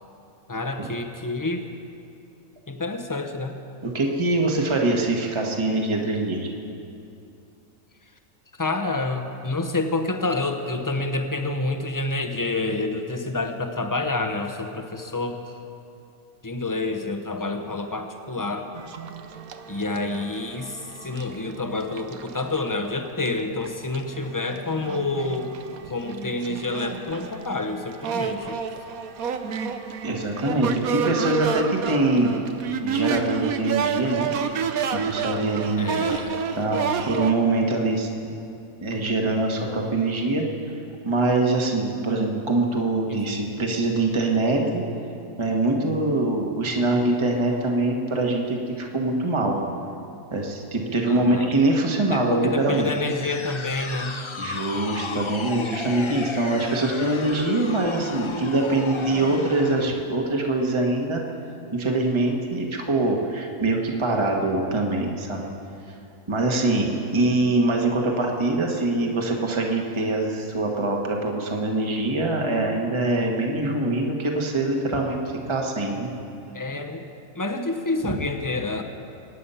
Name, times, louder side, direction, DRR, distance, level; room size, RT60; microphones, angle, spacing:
voice 1, 0.5-1.7 2.7-3.6 8.6-15.6 16.4-18.7 19.7-25.5 25.9-28.6 35.8-36.4 43.1-43.2 51.1-51.5 52.1-54.2 76.5-77.1 77.3-78.8, left 2 dB, 15° left, 5 dB, 0.8 m, -28 dB
voice 2, 3.8-6.5 30.0-32.3 32.8-34.3 34.9-35.9 36.5-36.8 37.0-38.3 38.8-40.4 41.0-44.8 45.4-49.6 50.3-52.9 54.4-61.2 61.7-65.4 66.3-76.1, right 2 dB, 20° right, 0 dB, 1.4 m, -23 dB
sound 1, 18.7-22.7 23.3-23.4 23.6-37.3, right 6 dB, 80° right, 1.3 m, -30 dB
sound 2, 52.6-60.0, left 4 dB, 45° left, 0.3 m, -34 dB
24.5 x 9.6 x 5.7 m, 2.7 s
omnidirectional pair, 1.5 m